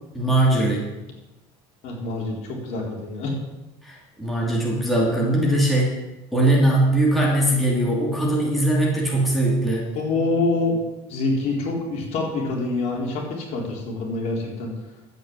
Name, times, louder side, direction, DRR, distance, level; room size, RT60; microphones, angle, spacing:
voice 1, 0.1-0.8 3.8-5.9 6.3-9.9, right 1 dB, ahead, -4 dB, 2.9 m, -20 dB
voice 2, 1.8-3.4 9.9-10.8 11.1-14.7, left 2 dB, 55° left, -1 dB, 3.9 m, -26 dB
12.0 x 8.4 x 7.6 m, 1.0 s
cardioid pair, 150°, 14 cm